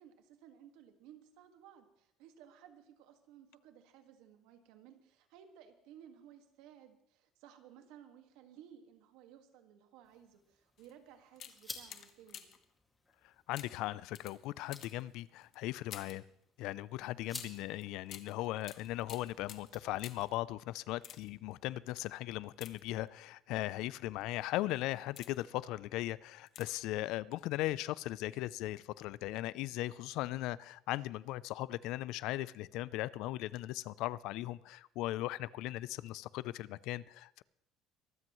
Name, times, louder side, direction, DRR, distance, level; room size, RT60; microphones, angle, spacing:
voice 1, 0.0-12.5, right 9 dB, 80° right, 1.7 m, -58 dB
sound 1, 10.0-20.4, left 2 dB, 15° left, 2.1 m, -55 dB
sound 2, 10.8-10.9 11.3-12.7 13.5-16.3 17.3-20.4 20.9-21.5 22.5-23.3 24.0-24.2 24.8-25.6 26.5-26.9 27.2-27.3, left 9 dB, 50° left, 1.1 m, -52 dB
voice 2, 13.5-16.2 16.6-37.4, left 16 dB, 70° left, 0.4 m, -38 dB
23.5 x 13.0 x 3.1 m
cardioid pair, 135°, 0 cm